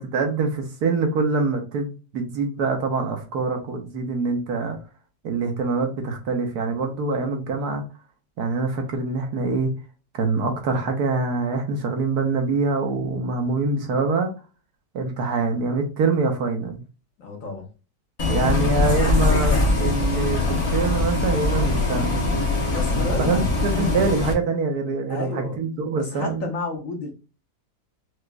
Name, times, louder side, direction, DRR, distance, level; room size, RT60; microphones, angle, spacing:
voice 1, 0.0-4.8 5.2-7.8 8.4-9.7 10.1-14.3 14.9-16.8 18.3-22.1 23.2-26.5, right 4 dB, 70° right, 1.3 m, -24 dB
voice 2, 17.2-17.7 22.7-23.6 25.1-25.6 26.0-27.1, left 3 dB, 55° left, 1.2 m, -31 dB
Bus, 18.2-24.3, left 2 dB, 30° left, 0.7 m, -22 dB
4.9 x 2.5 x 2.2 m
omnidirectional pair, 1.8 m